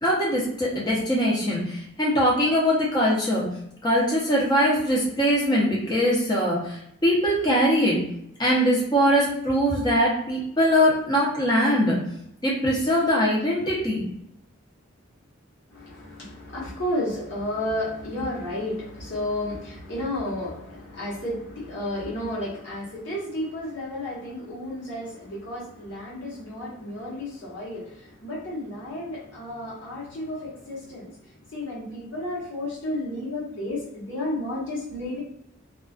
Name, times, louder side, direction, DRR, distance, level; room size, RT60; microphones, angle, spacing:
voice 1, 0.0-3.5 3.8-8.0 8.4-12.0 12.4-14.0, equal, 20° left, -4 dB, 0.6 m, -22 dB
voice 2, 15.7-31.1 31.5-35.2, left 1 dB, 60° left, -6 dB, 1.1 m, -32 dB
2.4 x 2.3 x 2.3 m, 0.76 s
head